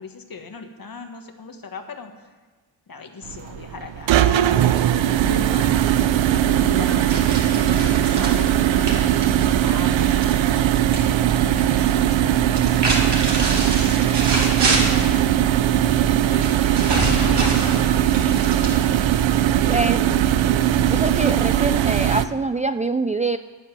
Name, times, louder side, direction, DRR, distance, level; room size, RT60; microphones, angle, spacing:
voice 1, 0.0-2.1 2.9-5.9 6.3-7.2 7.6-13.1 13.5-15.3 16.1-18.9, left 4 dB, 50° left, 6 dB, 1.7 m, -38 dB
sound 1, 3.3-22.3, right 11 dB, 85° right, 0.6 m, -19 dB
sound 2, 7.1-11.0 11.3-11.9 12.5-15.2 16.4-19.1, right 2 dB, 65° right, 3.5 m, -26 dB
voice 2, 19.7-20.2 20.9-23.4, right 3 dB, 15° right, 10 dB, 0.4 m, -24 dB
9.9 x 9.4 x 7.6 m, 1.4 s
cardioid pair, 50°, 44 cm